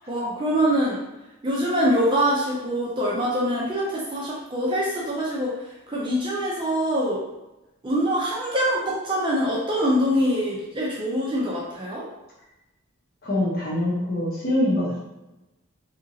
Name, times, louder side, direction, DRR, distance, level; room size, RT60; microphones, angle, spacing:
voice 1, 0.1-1.0 1.4-5.5 5.9-7.2 7.8-12.1, equal, 20° right, -5 dB, 0.5 m, -24 dB
voice 2, 13.2-15.0, left 1 dB, 45° left, -6 dB, 0.9 m, -24 dB
2.8 x 2.5 x 2.7 m, 0.98 s
head